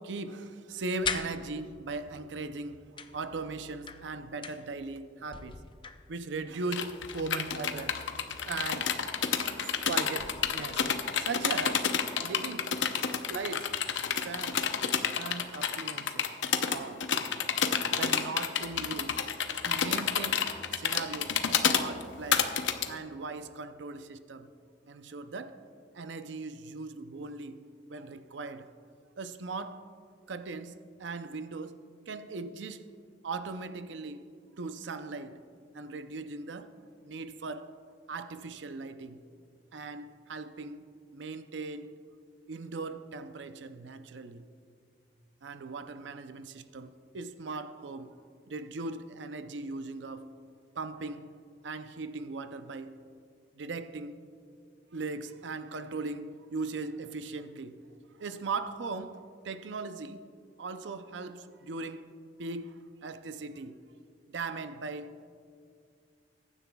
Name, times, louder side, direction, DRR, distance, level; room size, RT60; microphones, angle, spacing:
voice 1, 0.0-5.6 6.1-8.0 8.5-9.0 9.9-11.9 12.2-12.8 13.3-13.8 14.2-14.7 15.2-16.3 16.7-17.1 17.9-19.3 19.6-22.5 22.9-24.5 24.9-25.7 25.9-28.7 29.2-29.9 30.3-32.9 33.2-34.3 34.6-35.4 35.7-36.7 37.0-37.7 38.1-39.2 39.7-40.8 41.1-42.0 42.5-44.5 45.4-48.1 48.5-50.4 50.8-51.4 51.6-53.0 53.5-54.2 54.9-57.8 58.2-60.2 60.6-62.0 62.4-63.8 64.3-65.2, right 3 dB, 75° right, 0.5 m, -39 dB
sound 1, 0.7-2.0 3.0-4.9 5.2-6.4 7.1-8.1 9.4-9.9 10.2-11.2 12.8-12.9 13.4-13.5 13.9-14.7, left 6 dB, 30° left, 0.5 m, -42 dB
sound 2, 6.7-22.9, left 7 dB, 85° left, 0.7 m, -29 dB
21.5 x 9.9 x 2.3 m
head